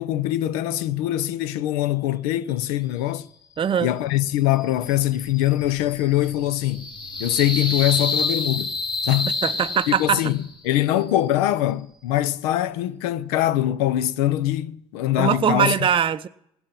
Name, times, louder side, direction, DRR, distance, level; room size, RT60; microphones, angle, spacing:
voice 1, 0.0-3.3 3.8-6.9 7.2-8.7 9.0-9.3 9.9-10.4 10.6-15.7, left 14 dB, 80° left, 0.6 m, -23 dB
voice 2, 3.6-3.9 9.4-10.2 15.2-16.3, right 8 dB, 30° right, 0.5 m, -21 dB
sound 1, 4.5-10.5, left 3 dB, 25° left, 2.2 m, -29 dB
17.5 x 10.5 x 5.8 m
hypercardioid pair, 65°, 18 cm